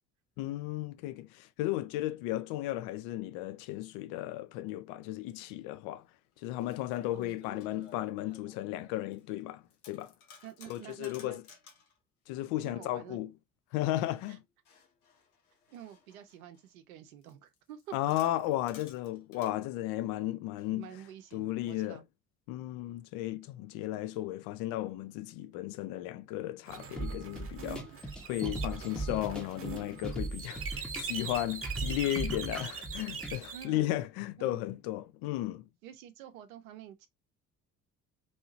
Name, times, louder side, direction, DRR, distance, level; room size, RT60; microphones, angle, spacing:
voice 1, 0.4-6.0 6.4-10.1 10.7-11.4 12.3-13.3 13.7-14.4 17.9-20.9 21.3-22.0 22.5-27.9 28.2-35.6, left 15 dB, 55° left, 0.4 m, -35 dB
sound 1, 5.5-5.6 6.3-9.4 9.7-12.0 13.8-16.7 17.2-19.6 20.6-21.8, left 5 dB, 75° left, 0.9 m, -57 dB
voice 2, 10.4-11.4 12.6-13.2 14.3-14.4 15.7-17.9 20.7-22.0 33.5-33.9 34.4-34.6 35.8-37.1, right 10 dB, 70° right, 0.7 m, -48 dB
sound 2, 26.7-33.6, right 6 dB, 30° right, 0.9 m, -42 dB
sound 3, 27.0-33.4, right 2 dB, ahead, 0.7 m, -38 dB
3.1 x 2.7 x 2.6 m
figure-of-eight pair, 50°, 44 cm